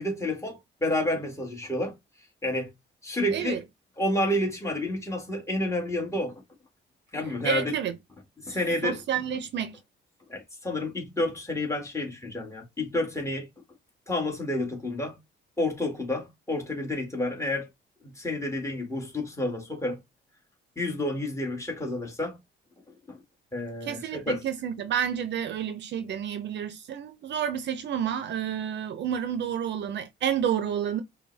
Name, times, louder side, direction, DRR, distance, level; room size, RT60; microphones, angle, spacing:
voice 1, 0.0-2.0 2.4-2.7 3.0-3.6 4.0-6.3 7.1-7.7 8.4-9.0 10.3-13.5 14.1-15.2 15.6-17.7 18.0-20.0 20.8-22.4 23.1-23.2 23.5-24.4, left 1 dB, 15° left, 1.8 m, -30 dB
voice 2, 3.3-3.6 7.4-8.0 8.8-9.8 23.8-31.0, right 9 dB, 65° right, 0.6 m, -30 dB
5.2 x 2.3 x 3.2 m
cardioid pair, 90°, 20 cm